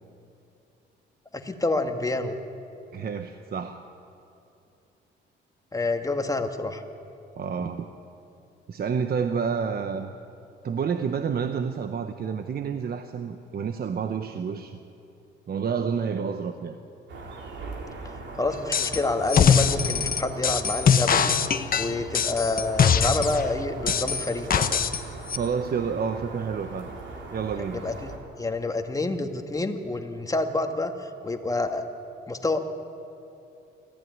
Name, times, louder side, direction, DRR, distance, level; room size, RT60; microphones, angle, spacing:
voice 1, 1.3-2.4 5.7-6.8 18.4-21.3 21.7-24.8 27.7-28.1 28.4-31.8 32.3-32.6, left 2 dB, 15° left, 5 dB, 1.9 m, -28 dB
voice 2, 2.9-3.8 7.4-7.9 8.7-10.1 10.6-14.8 15.5-16.8 25.4-26.9 27.3-27.8, right 6 dB, 50° right, 8 dB, 1.0 m, -29 dB
sound 1, 17.1-28.2, right 3 dB, 65° right, 3.7 m, -40 dB
sound 2, 18.7-19.0 19.3-23.4 23.9-25.0 25.3-25.4, left 7 dB, 45° left, 1.2 m, -22 dB
25.5 x 14.5 x 9.5 m, 2.8 s
cardioid pair, 90°, 20 cm